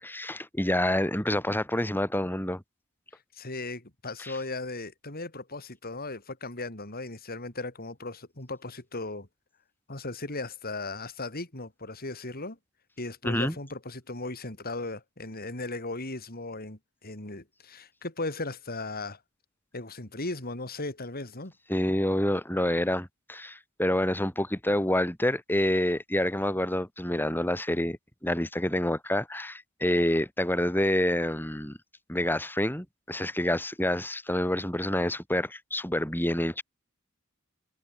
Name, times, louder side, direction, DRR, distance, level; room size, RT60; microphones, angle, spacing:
voice 1, 0.0-2.6 4.2-4.3 13.2-13.5 21.7-31.8 32.1-36.6, left 1 dB, 10° left, 6.3 m, -27 dB
voice 2, 3.3-9.3 9.9-12.6 13.0-19.2 19.7-21.5, left 2 dB, 45° left, 4.4 m, -37 dB
head